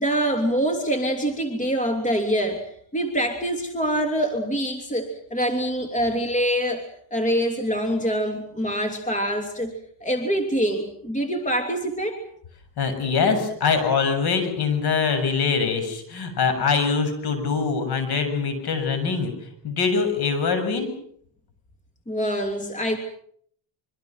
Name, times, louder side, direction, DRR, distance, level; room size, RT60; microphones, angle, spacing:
voice 1, 0.0-12.2 22.1-23.0, equal, 15° left, 5 dB, 3.0 m, -25 dB
voice 2, 12.8-19.3 19.6-20.9, left 5 dB, 55° left, 8 dB, 7.5 m, -23 dB
26.0 x 24.5 x 6.2 m, 0.64 s
cardioid pair, 115°, 45 cm